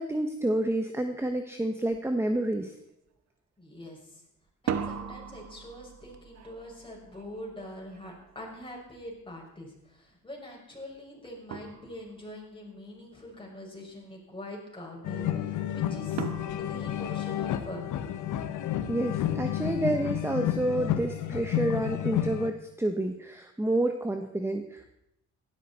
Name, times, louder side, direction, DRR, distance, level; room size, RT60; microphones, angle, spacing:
voice 1, 0.0-2.7 18.9-24.9, right 1 dB, 10° right, 6 dB, 1.1 m, -29 dB
sound 1, 1.9-2.1 2.4-3.0 4.5-9.3 11.0-11.1 11.5-12.4 16.2-17.9, right 7 dB, 60° right, 1.3 m, -39 dB
voice 2, 3.6-4.2 4.6-16.2 16.6-17.9, left 1 dB, 15° left, -2 dB, 6.1 m, -44 dB
sound 2, 15.0-22.5, left 11 dB, 80° left, 1.1 m, -31 dB
16.5 x 12.5 x 4.3 m, 0.81 s
cardioid pair, 90°, 30 cm